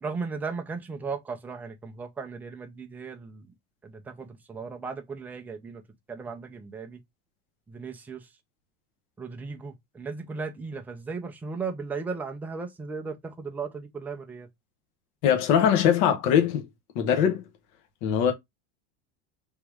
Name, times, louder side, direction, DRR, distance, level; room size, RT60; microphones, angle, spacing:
voice 1, 0.0-3.5 3.8-5.8 6.1-7.0 7.7-8.2 9.2-14.5, right 4 dB, 5° right, 0.3 m, -36 dB
voice 2, 15.2-16.7 16.9-17.4 18.0-18.3, left 8 dB, 60° left, 1.2 m, -21 dB
3.6 x 3.0 x 4.8 m
supercardioid pair, 150°, 37 cm